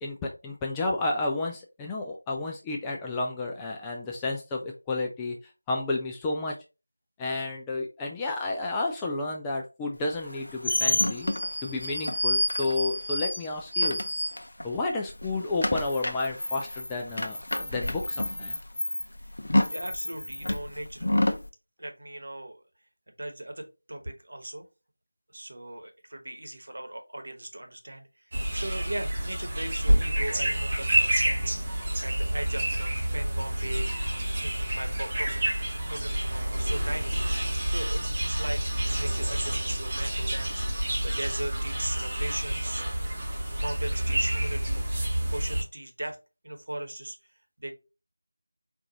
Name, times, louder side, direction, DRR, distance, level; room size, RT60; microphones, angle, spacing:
voice 1, 0.0-5.4 5.7-6.6 7.2-11.3 11.6-14.0 14.6-18.6, left 2 dB, 5° left, 0 dB, 0.3 m, -31 dB
sound 1, 10.2-14.8 15.1-21.5, left 1 dB, 60° left, 0.7 m, -29 dB
voice 2, 19.7-21.1 21.8-22.6 23.2-24.7 25.3-35.5 35.9-44.8 45.3-46.2 46.4-47.3 47.6-47.7, right 1 dB, 55° right, 5 dB, 1.1 m, -39 dB
sound 2, 28.3-45.6, right 1 dB, 20° right, 1.0 m, -28 dB
4.6 x 2.5 x 3.9 m, 0.29 s
figure-of-eight pair, 170°, 0 cm